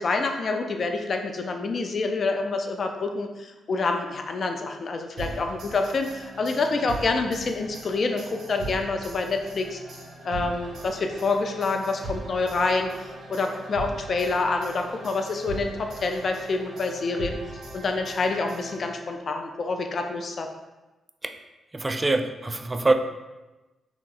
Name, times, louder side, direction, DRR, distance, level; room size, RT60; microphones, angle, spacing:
voice 1, 0.0-9.8 10.2-17.4 17.7-20.5, left 3 dB, 50° left, 4 dB, 0.4 m, -27 dB
sound 1, 5.2-19.3, right 2 dB, 65° right, 1.0 m, -40 dB
voice 2, 21.7-22.9, right 2 dB, 25° right, 7 dB, 0.3 m, -24 dB
3.0 x 2.9 x 3.8 m, 1.1 s
cardioid pair, 80°, 0 cm